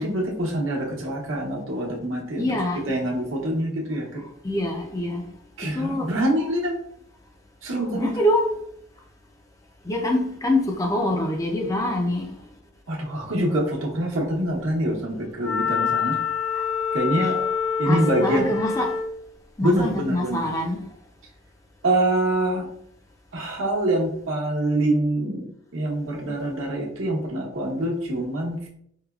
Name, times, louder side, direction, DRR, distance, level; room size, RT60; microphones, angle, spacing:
voice 1, 0.0-2.5 2.9-4.2 5.6-6.7 7.6-8.1 12.9-16.2 16.9-17.4 17.8-18.5 19.6-20.4 21.8-22.7 23.3-28.7, right 1 dB, 75° right, -2 dB, 0.9 m, -25 dB
voice 2, 2.4-3.0 4.4-5.2 5.6-6.1 7.8-8.4 9.9-12.3 17.2-17.3 17.8-18.9 19.6-20.8, left 1 dB, 15° left, 2 dB, 0.4 m, -25 dB
Wind instrument woodwind instrument, 15.4-19.1, left 6 dB, 90° left, 0.6 m, -26 dB
4.7 x 2.2 x 2.3 m, 0.67 s
head